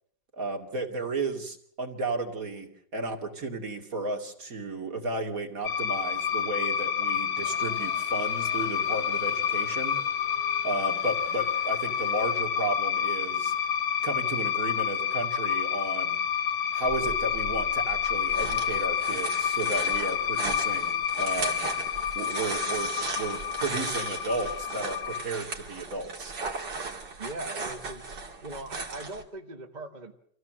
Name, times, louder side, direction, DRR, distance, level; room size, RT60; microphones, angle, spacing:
voice 1, 0.4-10.0 10.6-13.5 14.0-16.2 16.7-21.7 22.1-26.4, right 2 dB, 50° right, 3 dB, 2.9 m, -33 dB
sound 1, 5.6-25.2, left 8 dB, 55° left, 1.9 m, -29 dB
sound 2, 7.3-12.7, left 1 dB, 15° left, 2.5 m, -50 dB
sound 3, 16.8-29.2, right 4 dB, 70° right, 3.0 m, -37 dB
voice 2, 27.2-28.1 28.4-30.1, right 2 dB, 25° right, 4 dB, 1.4 m, -40 dB
26.0 x 16.0 x 7.6 m, 0.66 s
omnidirectional pair, 1.9 m